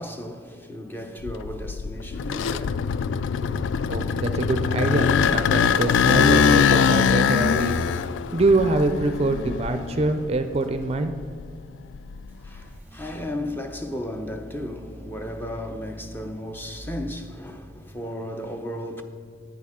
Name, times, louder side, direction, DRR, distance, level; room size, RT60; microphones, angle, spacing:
voice 1, 0.0-2.8 3.4-3.7 12.4-19.0, left 1 dB, 10° left, 0.6 m, -35 dB
sound 1, 1.3-10.3 10.7-12.6, left 6 dB, 85° left, 0.3 m, -22 dB
voice 2, 3.9-7.9 8.3-11.1, right 2 dB, 35° right, 0.4 m, -24 dB
sound 2, 12.3-18.2, equal, 10° right, 1.2 m, -43 dB
10.5 x 9.1 x 3.6 m
head